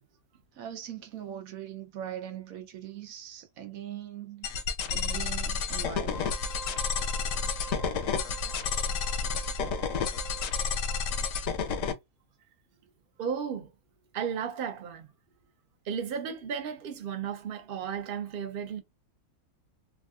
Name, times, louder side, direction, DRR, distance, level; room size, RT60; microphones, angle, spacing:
voice 1, 0.5-4.6 4.9-6.2 8.4-8.5, right 10 dB, 75° right, 1.0 m, -41 dB
sound 1, 4.4-11.9, left 5 dB, 70° left, 0.9 m, -30 dB
Wind instrument woodwind instrument, 6.0-11.3, right 2 dB, 5° left, 0.7 m, -46 dB
voice 2, 13.2-13.7 14.1-15.1 15.9-18.8, right 7 dB, 50° right, 0.7 m, -34 dB
3.5 x 2.3 x 2.3 m
omnidirectional pair, 1.5 m